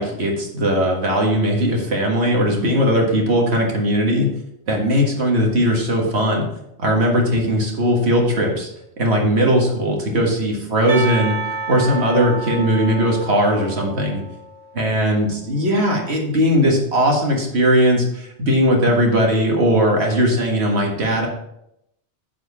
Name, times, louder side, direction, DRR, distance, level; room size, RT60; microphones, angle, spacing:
voice 1, 0.0-4.3 4.7-6.5 6.8-8.7 9.0-11.4 11.7-14.2 14.7-21.3, equal, 70° right, 0 dB, 1.9 m, -18 dB
Percussion, 10.9-14.8, right 3 dB, 35° right, 2.1 m, -30 dB
9.5 x 4.9 x 4.2 m, 0.79 s
omnidirectional pair, 1.2 m